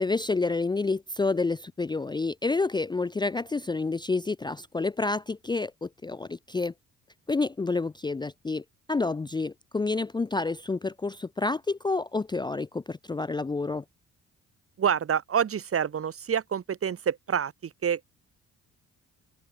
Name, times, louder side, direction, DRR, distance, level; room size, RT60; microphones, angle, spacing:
voice 1, 0.0-6.7 7.3-13.8, left 3 dB, 15° left, 0.5 m, -29 dB
voice 2, 14.8-18.1, right 8 dB, 50° right, 2.2 m, -27 dB
open air
cardioid pair, 90°, 30 cm